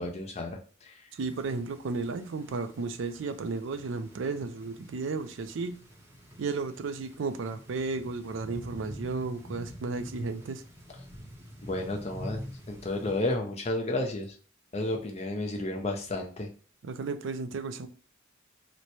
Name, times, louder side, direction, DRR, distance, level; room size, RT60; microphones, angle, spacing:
voice 1, 0.0-1.1 11.6-14.4 14.7-16.5, left 2 dB, 35° left, 0.6 m, -32 dB
voice 2, 1.1-5.7 6.4-10.6 16.8-17.9, right 4 dB, 65° right, 0.4 m, -33 dB
sound 1, 1.2-13.1, equal, 15° right, 0.7 m, -47 dB
3.0 x 2.1 x 4.0 m
head